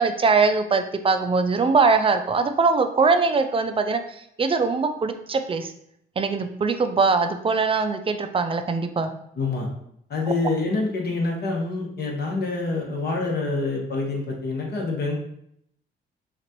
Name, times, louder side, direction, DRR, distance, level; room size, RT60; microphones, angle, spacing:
voice 1, 0.0-5.7 6.2-9.1, right 4 dB, 25° right, 8 dB, 0.5 m, -22 dB
voice 2, 9.4-9.7 10.1-15.2, left 3 dB, 55° left, -1 dB, 1.3 m, -26 dB
5.9 x 2.5 x 3.0 m, 0.73 s
cardioid pair, 90°, 20 cm